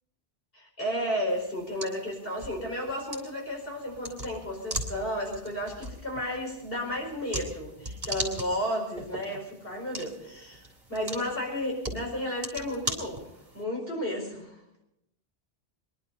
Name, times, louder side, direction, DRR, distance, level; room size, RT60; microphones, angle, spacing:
voice 1, 0.5-14.6, equal, 55° left, 0 dB, 5.0 m, -33 dB
sound 1, 1.3-13.6, right 1 dB, 45° right, 3.0 m, -40 dB
23.0 x 11.5 x 5.4 m, 0.84 s
omnidirectional pair, 1.1 m